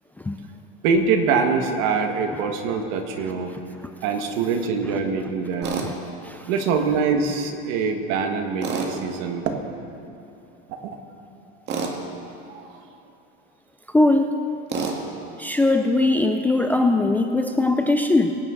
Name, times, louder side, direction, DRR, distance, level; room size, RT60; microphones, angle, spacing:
voice 1, 0.8-3.5 4.0-5.9 6.5-9.6 10.8-10.9 12.5-12.8, right 5 dB, 65° right, 5 dB, 1.7 m, -24 dB
voice 2, 5.6-5.9 6.2-6.5 13.9-14.4 15.4-18.4, left 2 dB, 5° left, 5 dB, 0.4 m, -20 dB
Tools, 5.6-5.9 8.6-8.9 11.7-12.0 14.7-15.0, right 5 dB, 40° right, 1.7 m, -27 dB
23.5 x 9.8 x 3.9 m, 2.7 s
supercardioid pair, 140°, 29 cm